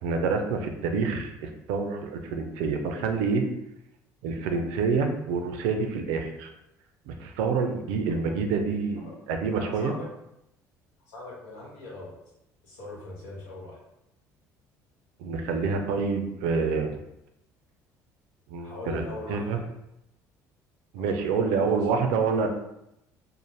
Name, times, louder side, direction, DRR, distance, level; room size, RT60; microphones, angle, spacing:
voice 1, 0.0-3.4 4.2-6.5 7.1-9.9 15.2-16.9 18.5-19.0 19.3-19.6 20.9-22.5, right 5 dB, 85° right, 5 dB, 0.4 m, -27 dB
voice 2, 9.5-10.0 11.1-12.1 12.6-13.8 18.6-19.6 21.0-22.0, left 2 dB, 85° left, -5 dB, 1.0 m, -41 dB
2.7 x 2.0 x 3.0 m, 0.84 s
supercardioid pair, 75°, 8 cm